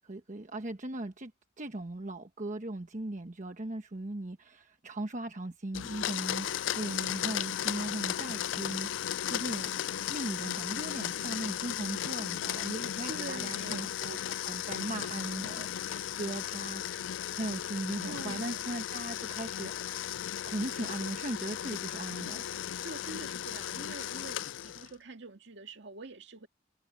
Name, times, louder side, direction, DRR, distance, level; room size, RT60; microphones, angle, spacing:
voice 1, 0.0-1.3 1.6-9.7 10.1-16.8 17.3-20.0 20.4-22.4, right 1 dB, 40° right, 1.1 m, -38 dB
Domestic sounds home sounds, 5.7-24.9, left 11 dB, 75° left, 0.4 m, -36 dB
voice 2, 13.1-13.9 18.0-18.6 22.8-26.5, right 3 dB, 65° right, 2.2 m, -45 dB
head